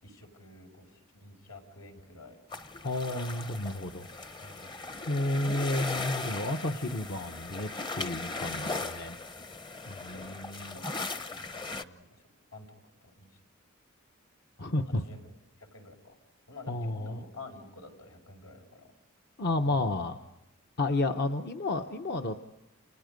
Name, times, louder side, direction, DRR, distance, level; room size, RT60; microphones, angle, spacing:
voice 1, 0.0-2.4 4.4-4.8 10.1-12.2 12.5-12.7 13.0-13.4 15.0-15.2 15.6-16.2 16.5-18.9 19.6-20.1, left 2 dB, 85° left, 3 dB, 5.8 m, -49 dB
sound 1, 2.5-11.8, left 3 dB, 20° left, 0.8 m, -38 dB
voice 2, 2.8-4.1 5.1-9.2 9.9-10.8 14.6-15.0 16.7-17.2 19.4-20.2 20.8-22.4, left 2 dB, 50° left, 5 dB, 0.9 m, -31 dB
29.5 x 29.0 x 5.3 m, 0.98 s
head